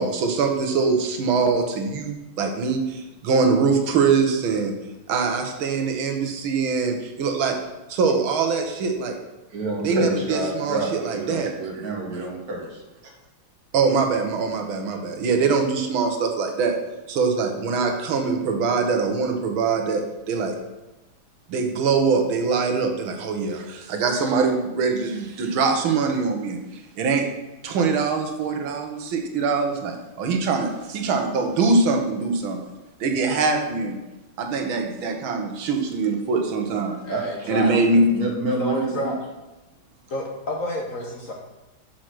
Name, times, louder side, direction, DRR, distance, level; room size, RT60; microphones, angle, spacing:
voice 1, 0.0-4.7 5.1-7.6 7.9-9.2 9.8-11.5 13.7-16.8 17.1-20.5 21.5-27.3 27.6-32.6 33.0-34.0 34.4-37.0 37.5-38.1, right 4 dB, 80° right, 4 dB, 1.8 m, -23 dB
voice 2, 9.5-12.8 36.7-36.8 37.1-37.5 38.1-39.1, right 2 dB, 50° right, 0 dB, 1.7 m, -28 dB
voice 3, 37.0-38.0 38.5-39.2 40.1-41.3, left 1 dB, 50° left, 0 dB, 1.1 m, -30 dB
6.5 x 5.8 x 6.0 m, 1.0 s
omnidirectional pair, 2.2 m